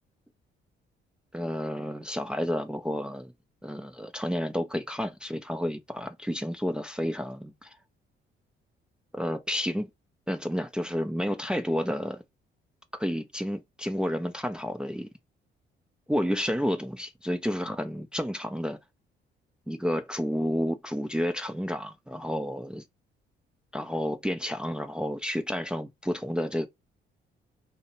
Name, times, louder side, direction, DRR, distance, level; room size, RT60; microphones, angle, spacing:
voice 1, 1.3-3.3 3.6-7.7 9.1-9.9 10.3-12.2 12.9-15.1 16.1-18.8 19.7-22.8 23.7-26.7, equal, 5° right, 0.4 m, -30 dB
2.6 x 2.0 x 2.7 m
cardioid pair, 90°, 20 cm